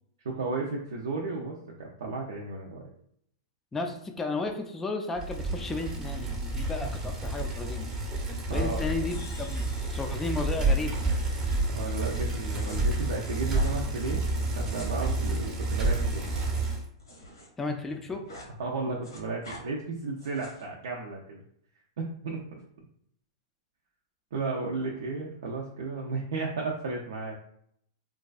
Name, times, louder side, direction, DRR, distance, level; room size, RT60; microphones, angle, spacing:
voice 1, 0.2-2.8 8.5-8.8 11.7-14.2 14.6-16.4 18.6-21.4 22.0-22.6 24.3-27.3, right 3 dB, 70° right, -2 dB, 0.4 m, -34 dB
voice 2, 3.7-7.9 8.5-11.0 17.6-18.2, left 3 dB, 10° left, 3 dB, 0.3 m, -33 dB
Bicycle, 5.2-16.9, right 2 dB, 25° right, 0.6 m, -29 dB
sound 1, 9.1-11.7, left 5 dB, 70° left, 0.5 m, -53 dB
sound 2, 12.5-12.8 13.5-13.8 14.5-17.5 17.8-18.5 18.8-19.6 20.2-20.7, equal, 90° left, 0.9 m, -47 dB
2.3 x 2.3 x 2.3 m, 0.69 s
hypercardioid pair, 110°, 2 cm